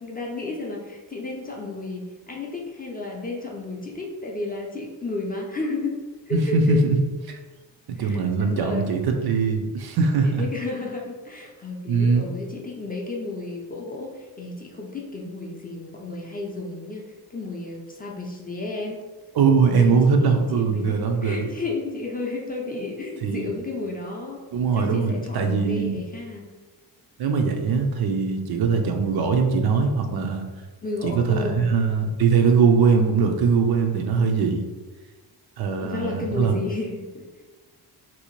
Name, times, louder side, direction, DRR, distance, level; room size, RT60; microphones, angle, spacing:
voice 1, 0.0-6.8 8.0-9.0 10.2-19.0 19.5-24.4 24.7-26.5 30.8-31.7 35.8-37.4, left 2 dB, 20° left, -1 dB, 0.4 m, -32 dB
voice 2, 6.3-7.0 7.3-7.4 8.0-10.4 11.9-12.3 19.4-21.5 23.2-23.5 24.5-25.9 27.2-30.5 31.0-34.6 35.6-36.6, right 5 dB, 60° right, 4 dB, 0.5 m, -21 dB
2.7 x 2.0 x 2.9 m, 1.3 s
cardioid pair, 85°, 43 cm